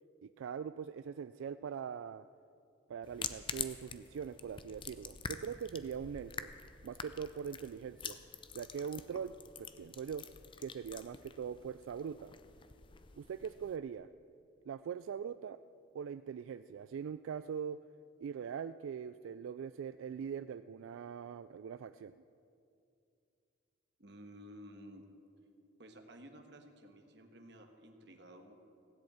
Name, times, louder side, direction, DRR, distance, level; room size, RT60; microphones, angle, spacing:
voice 1, 0.2-2.2 2.9-6.5 6.8-8.2 8.5-9.3 9.6-10.3 10.6-12.3 13.2-14.1 14.7-15.6 15.9-17.8 18.2-22.1, right 7 dB, 90° right, 12 dB, 0.3 m, -42 dB
sound 1, 3.0-13.8, left 6 dB, 25° left, 0.5 m, -47 dB
voice 2, 24.0-25.1 25.8-28.5, equal, 60° right, 5 dB, 1.4 m, -54 dB
16.5 x 7.9 x 8.6 m, 2.5 s
head